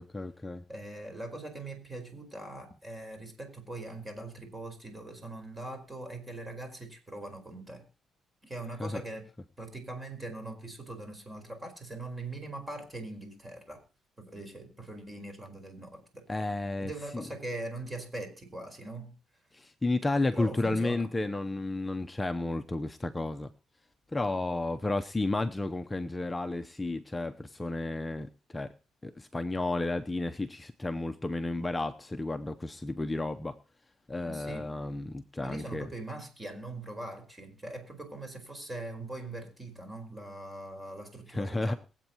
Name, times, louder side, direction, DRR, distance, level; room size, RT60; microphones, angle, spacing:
voice 1, 0.0-0.6 8.8-9.0 16.3-17.2 19.5-23.5 24.1-28.7 29.0-33.6 34.1-35.9 41.3-41.7, left 2 dB, 15° left, 8 dB, 0.7 m, -32 dB
voice 2, 0.7-7.8 8.4-9.3 9.6-13.8 14.2-16.3 16.8-19.2 20.3-21.1 34.2-34.8 35.4-41.8, right 2 dB, 20° right, 6 dB, 4.8 m, -41 dB
22.5 x 8.3 x 2.9 m, 0.34 s
cardioid pair, 90°, 0 cm